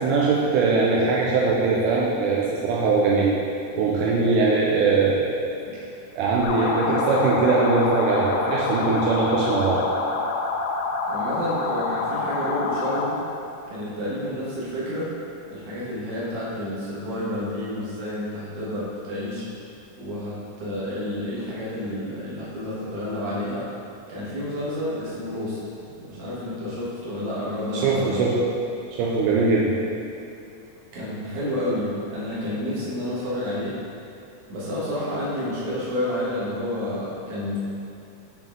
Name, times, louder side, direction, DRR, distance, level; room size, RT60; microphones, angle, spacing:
voice 1, 0.0-3.3 3.7-5.3 6.2-9.8 27.7-28.4 28.9-29.7, right 4 dB, 85° right, -4 dB, 2.1 m, -21 dB
sound 1, 6.4-13.2, left 3 dB, 90° left, 2.3 m, -27 dB
voice 2, 11.1-13.2 13.7-15.1 15.5-19.5 20.0-23.7 24.1-25.6 25.8-28.2 30.9-33.7 34.5-37.6, left 1 dB, 55° right, -8 dB, 2.2 m, -30 dB
7.3 x 3.8 x 3.6 m, 2.6 s
omnidirectional pair, 3.8 m